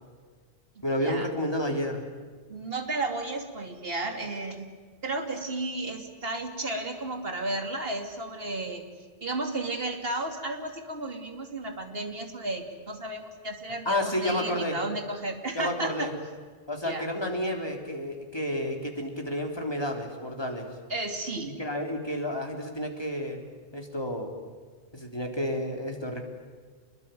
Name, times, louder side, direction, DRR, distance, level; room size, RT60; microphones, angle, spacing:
voice 1, 0.8-2.1 13.9-14.8 15.5-16.1 16.7-20.7 21.5-23.4 23.7-24.3 24.9-26.2, left 1 dB, 20° left, 2 dB, 3.8 m, -30 dB
voice 2, 2.5-4.7 5.0-8.8 9.2-16.1 16.8-17.1 20.9-21.5, right 2 dB, 55° right, 5 dB, 2.9 m, -33 dB
27.0 x 21.5 x 9.3 m, 1.5 s
omnidirectional pair, 1.2 m